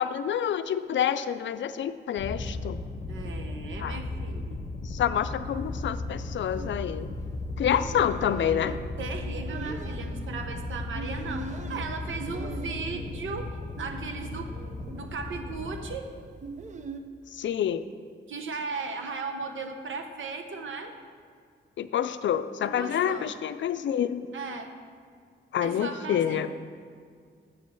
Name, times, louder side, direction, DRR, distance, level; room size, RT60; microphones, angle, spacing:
voice 1, 0.0-2.8 3.8-4.0 4.8-7.1 7.6-8.8 17.3-17.8 21.8-24.2 25.5-26.5, left 9 dB, 70° left, 12 dB, 0.4 m, -28 dB
sound 1, 2.2-16.0, left 2 dB, 40° left, 0.8 m, -36 dB
voice 2, 3.1-4.6 9.0-14.5 14.9-16.2 18.3-20.9 22.6-23.3 24.3-24.7 25.6-26.5, right 4 dB, 75° right, 5 dB, 0.8 m, -36 dB
sound 2, 5.4-17.0, right 3 dB, 35° right, 0.5 m, -43 dB
7.7 x 5.2 x 7.0 m, 2.1 s
wide cardioid pair, 115°, 20 cm